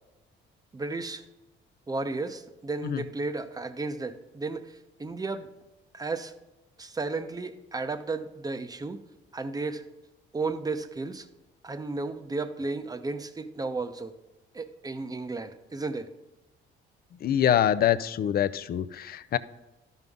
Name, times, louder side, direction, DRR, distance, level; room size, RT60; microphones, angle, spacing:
voice 1, 0.7-1.2 1.9-4.7 5.0-5.5 5.9-6.3 6.8-9.0 9.3-9.8 10.3-11.3 11.6-14.1 14.5-16.1, right 3 dB, 20° right, 9 dB, 0.7 m, -33 dB
voice 2, 17.2-19.4, left 10 dB, 50° left, 15 dB, 0.4 m, -25 dB
12.0 x 5.4 x 3.6 m, 1.0 s
cardioid pair, 90°, 20 cm